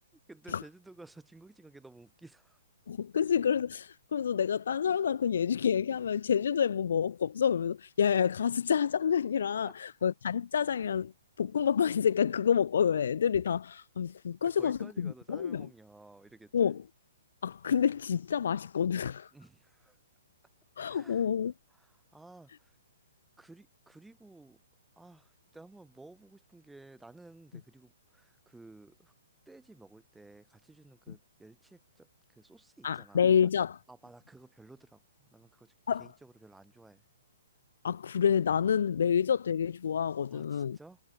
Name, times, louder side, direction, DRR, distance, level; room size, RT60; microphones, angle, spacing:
voice 1, 0.3-2.6 9.7-9.8 14.4-16.8 19.3-20.0 20.9-21.3 21.7-22.8 23.4-24.6 25.0-29.1 29.5-33.3 33.9-35.7 36.0-37.0 40.3-41.0, right 2 dB, 5° right, 5.3 m, -54 dB
voice 2, 2.9-11.1 11.4-15.7 16.5-16.8 17.4-19.3 20.8-21.5 32.8-33.8 35.9-36.1 37.8-40.8, left 7 dB, 60° left, 0.5 m, -28 dB
figure-of-eight pair, 125°, 0 cm